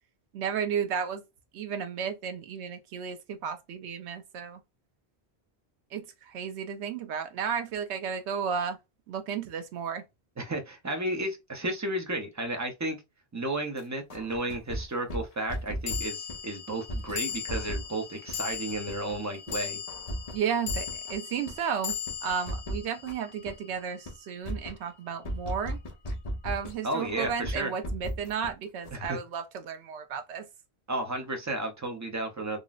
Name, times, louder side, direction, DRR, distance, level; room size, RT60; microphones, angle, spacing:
voice 1, 0.3-1.2 1.5-4.6 5.9-8.8 9.1-10.0 20.3-25.8 26.4-30.5, right 7 dB, 85° right, 0.9 m, -33 dB
voice 2, 10.4-13.0 13.3-19.8 26.8-27.7 28.9-29.2 30.9-32.6, right 1 dB, 25° right, 0.4 m, -33 dB
sound 1, 13.8-13.9 15.9-24.3, left 9 dB, 85° left, 1.2 m, -38 dB
sound 2, 14.1-16.4 16.9-17.9 18.3-19.2 19.5-19.6 19.9-21.2 21.5-23.5 23.9-24.1 24.4-26.7 27.0-28.5 28.8-29.1, equal, 40° left, 0.7 m, -36 dB
3.7 x 2.0 x 2.3 m
omnidirectional pair, 1.1 m